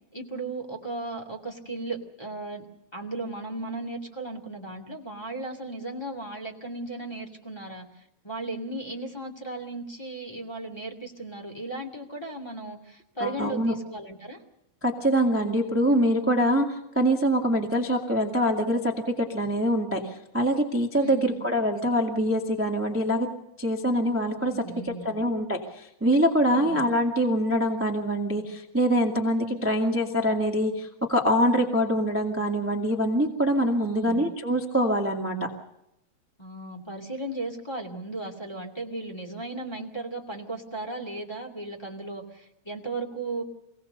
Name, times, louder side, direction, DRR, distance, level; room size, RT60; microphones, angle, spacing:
voice 1, 0.1-2.6 2.9-7.9 8.2-14.4 21.0-21.4 24.4-25.1 26.5-26.8 33.8-34.2 36.4-43.4, right 2 dB, 10° left, -2 dB, 1.3 m, -36 dB
voice 2, 13.2-13.7 14.8-23.3 23.6-24.5 24.8-35.5, equal, 15° right, 2 dB, 0.4 m, -24 dB
25.5 x 17.5 x 6.7 m, 0.85 s
omnidirectional pair, 4.5 m